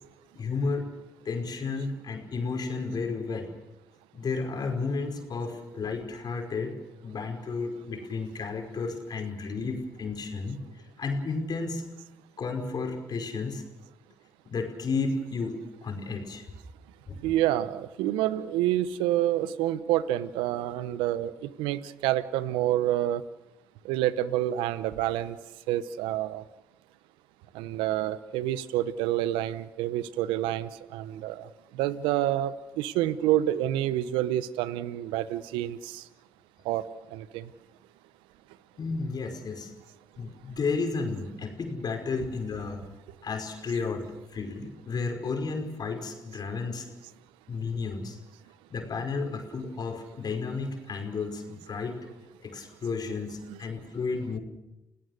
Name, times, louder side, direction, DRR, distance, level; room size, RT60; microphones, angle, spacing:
voice 1, 0.3-0.9 1.2-3.6 4.1-6.8 7.0-10.6 11.0-11.8 12.4-13.6 14.4-16.4 17.1-17.2 38.8-39.7 40.2-42.8 43.2-46.9 47.5-48.2 48.7-52.1 52.4-54.4, left 4 dB, 55° left, 4 dB, 5.1 m, -32 dB
voice 2, 17.2-21.3 21.6-23.2 23.8-25.4 25.7-26.4 27.5-31.5 31.8-36.0 36.7-36.8 37.1-37.4 53.5-53.6, right 13 dB, 85° right, 16 dB, 0.9 m, -28 dB
30.0 x 17.5 x 6.6 m, 0.96 s
hypercardioid pair, 50°, 8 cm